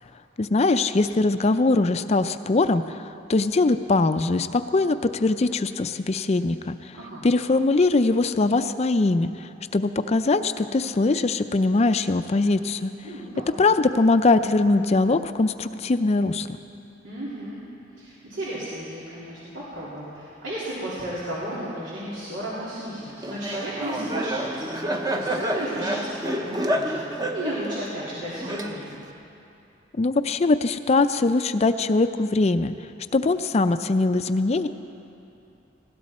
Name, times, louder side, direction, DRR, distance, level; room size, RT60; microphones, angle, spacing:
voice 1, 0.4-3.0 3.3-6.8 7.2-12.9 13.6-16.6 30.0-32.7 33.1-34.7, left 3 dB, 35° left, 10 dB, 0.4 m, -22 dB
voice 2, 6.9-7.2 13.0-13.4 17.0-17.6 18.0-29.0, right 1 dB, 90° right, -10 dB, 3.1 m, -34 dB
Laughter, 23.2-29.1, right 1 dB, 20° right, 0.8 m, -29 dB
20.0 x 16.5 x 4.3 m, 2.7 s
head